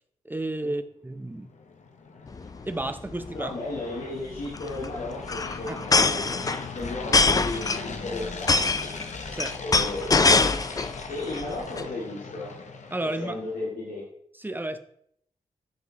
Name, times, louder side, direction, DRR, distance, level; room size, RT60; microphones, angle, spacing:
voice 1, 0.2-1.5 2.7-3.5 5.7-5.8 6.4-6.5 9.3-9.6 10.5-10.6 12.9-13.4 14.4-14.8, right 1 dB, 15° right, 9 dB, 0.7 m, -32 dB
sound 1, 1.3-13.6, left 4 dB, 55° left, 0.9 m, -40 dB
sound 2, 2.3-2.5 2.8-2.9 3.1-3.4 4.4-11.0 11.3-11.8, left 3 dB, 25° left, 0.4 m, -23 dB
voice 2, 3.3-8.9 9.6-10.5 11.1-12.5 13.2-14.0, left 2 dB, 75° left, -7 dB, 2.1 m, -35 dB
10.5 x 3.8 x 2.9 m, 0.66 s
supercardioid pair, 45°, 14 cm